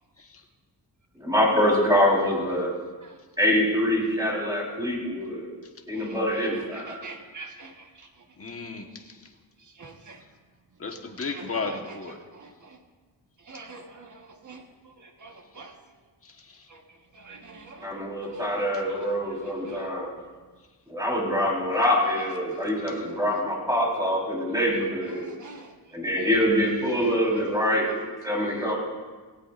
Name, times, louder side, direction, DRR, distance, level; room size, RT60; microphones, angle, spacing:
voice 1, 1.2-2.7 3.4-5.5 5.9-7.0 17.8-20.1 20.9-25.3 25.9-27.9 28.2-28.7, equal, 10° right, -3 dB, 4.2 m, -25 dB
voice 2, 5.9-8.1 9.6-10.2 11.3-12.0 12.3-12.8 13.4-15.7 16.7-16.8 17.1-20.0 22.5-22.6 25.1-25.7 27.0-27.2, right 3 dB, 45° right, 4 dB, 1.4 m, -46 dB
voice 3, 8.4-9.3 10.8-12.2 16.2-16.7 24.5-24.6 26.1-26.6, left 4 dB, 30° left, 3 dB, 1.4 m, -35 dB
17.5 x 16.5 x 2.6 m, 1.3 s
wide cardioid pair, 95°, 42 cm